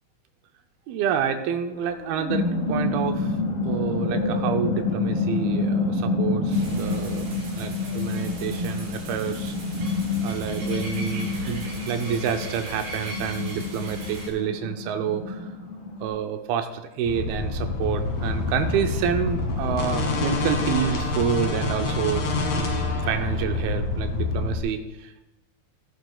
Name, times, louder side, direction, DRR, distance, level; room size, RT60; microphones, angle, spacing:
voice 1, 0.9-3.4 3.6-7.3 7.6-9.6 10.2-15.5 16.0-22.7 23.0-25.2, right 8 dB, 90° right, 6 dB, 2.6 m, -28 dB
sound 1, 1.8-16.1, left 3 dB, 85° left, 4.5 m, -28 dB
sound 2, 6.5-14.3, right 2 dB, 65° right, 5.4 m, -38 dB
sound 3, 17.0-24.6, left 3 dB, 60° left, 2.7 m, -27 dB
16.0 x 11.5 x 2.3 m, 1.0 s
omnidirectional pair, 4.2 m